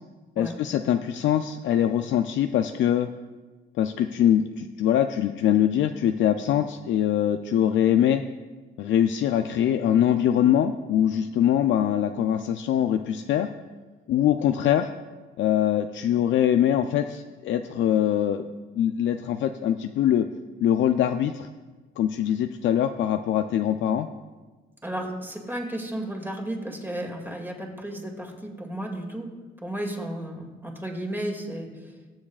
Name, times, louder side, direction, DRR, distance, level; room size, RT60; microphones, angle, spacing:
voice 1, 0.4-3.1 3.8-8.2 8.8-13.5 14.1-14.9 15.4-18.4 18.8-20.3 20.6-21.5 22.0-24.1, left 10 dB, 70° left, 8 dB, 0.4 m, -23 dB
voice 2, 24.8-29.3 29.6-32.0, right 1 dB, 10° right, 1 dB, 2.2 m, -33 dB
20.5 x 7.3 x 2.4 m, 1.3 s
cardioid pair, 90°, 20 cm